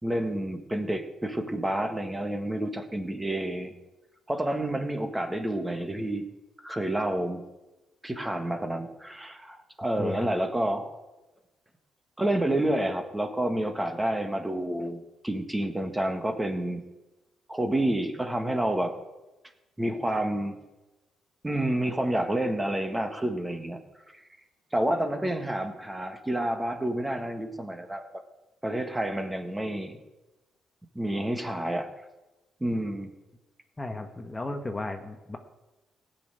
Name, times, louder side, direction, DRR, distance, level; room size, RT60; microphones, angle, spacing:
voice 1, 0.0-3.7 4.3-6.3 6.6-7.4 8.0-11.0 12.2-16.8 17.5-19.0 19.8-20.6 21.4-23.8 24.7-28.0 28.6-30.0 30.9-31.9 32.6-33.1, right 1 dB, 10° right, 7 dB, 1.6 m, -29 dB
voice 2, 10.0-10.3 33.8-35.4, left 2 dB, 15° left, 5 dB, 1.2 m, -34 dB
16.5 x 6.9 x 9.2 m, 1.1 s
cardioid pair, 90°, 0 cm